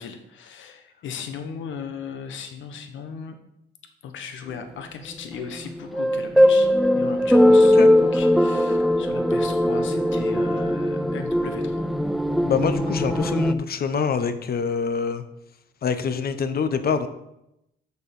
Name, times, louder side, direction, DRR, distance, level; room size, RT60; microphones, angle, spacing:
voice 1, 0.0-3.3 4.0-11.9, left 6 dB, 75° left, 6 dB, 1.3 m, -37 dB
sound 1, 5.7-13.5, left 1 dB, ahead, 0.4 m, -19 dB
voice 2, 12.4-15.2 15.8-17.1, left 6 dB, 50° left, 10 dB, 0.9 m, -25 dB
6.6 x 6.5 x 5.4 m, 0.83 s
cardioid pair, 90°, 20 cm